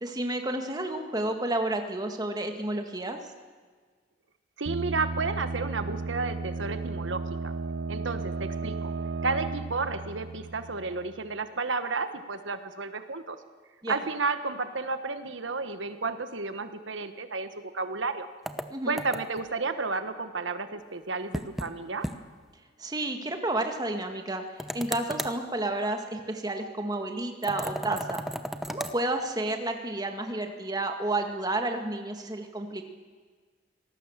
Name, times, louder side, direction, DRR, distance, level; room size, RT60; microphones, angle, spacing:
voice 1, 0.0-3.2 13.8-14.0 18.7-19.0 22.8-24.4 24.7-28.2 28.7-32.8, right 2 dB, 20° right, 5 dB, 2.0 m, -31 dB
voice 2, 4.6-7.5 7.9-8.9 9.2-13.4 13.9-18.3 18.9-22.1, right 3 dB, 80° right, 9 dB, 1.3 m, -32 dB
sound 1, 4.7-11.3, right 3 dB, 60° right, 0.6 m, -34 dB
sound 2, 18.5-19.5 21.3-21.7 22.0-22.2 22.5-22.6 24.6-25.4 27.4-29.0, equal, ahead, 0.9 m, -35 dB
25.5 x 18.5 x 7.4 m, 1.5 s
head